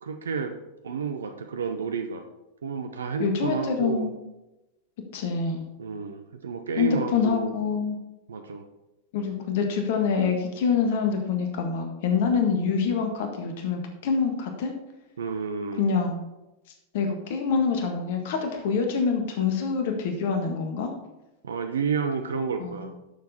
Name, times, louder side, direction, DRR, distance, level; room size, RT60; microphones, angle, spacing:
voice 1, 0.0-0.5 0.8-2.3 2.6-4.1 5.8-7.5 8.3-8.6 15.2-15.9 21.4-22.9, right 5 dB, 70° right, 7 dB, 0.7 m, -30 dB
voice 2, 3.2-4.1 5.1-5.7 6.8-8.0 9.1-14.7 15.8-16.2 16.9-20.9 22.6-22.9, left 5 dB, 50° left, 4 dB, 1.6 m, -26 dB
11.0 x 7.0 x 4.2 m, 0.98 s
figure-of-eight pair, 90°, 0 cm